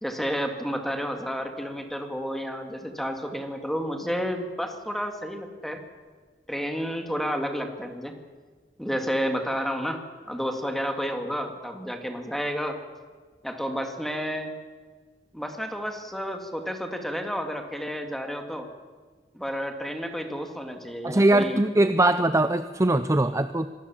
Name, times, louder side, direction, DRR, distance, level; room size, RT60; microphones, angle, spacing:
voice 1, 0.0-5.8 6.5-8.2 8.8-10.0 10.3-12.8 13.4-14.5 15.3-18.7 19.3-21.6, equal, ahead, 5 dB, 2.3 m, -31 dB
voice 2, 21.0-23.7, right 2 dB, 20° right, 11 dB, 0.6 m, -21 dB
26.0 x 19.5 x 7.1 m, 1.5 s
head